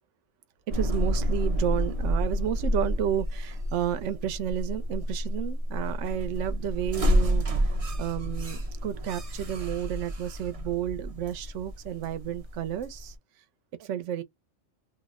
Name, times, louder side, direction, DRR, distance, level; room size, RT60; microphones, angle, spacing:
sound 1, 0.7-13.1, equal, 35° right, 0.6 m, -29 dB
voice 1, 0.7-13.2 13.8-14.2, right 11 dB, 70° right, 0.9 m, -32 dB
2.7 x 2.0 x 3.5 m
omnidirectional pair, 1.4 m